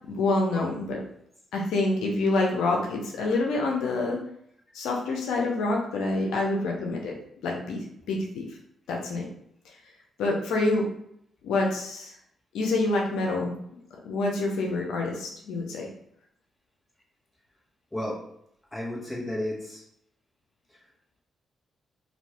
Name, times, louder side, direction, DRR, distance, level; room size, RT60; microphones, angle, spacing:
voice 1, 0.1-1.0 1.5-4.2 4.7-7.1 7.4-7.8 8.1-8.4 8.9-9.3 10.2-10.9 11.4-12.1 12.5-13.5 14.0-15.9, left 2 dB, 85° left, 0 dB, 0.5 m, -27 dB
voice 2, 17.9-18.2 18.7-19.8 20.7-20.8, left 1 dB, 10° left, -5 dB, 1.4 m, -33 dB
2.6 x 2.6 x 3.3 m, 0.72 s
supercardioid pair, 65°, 0 cm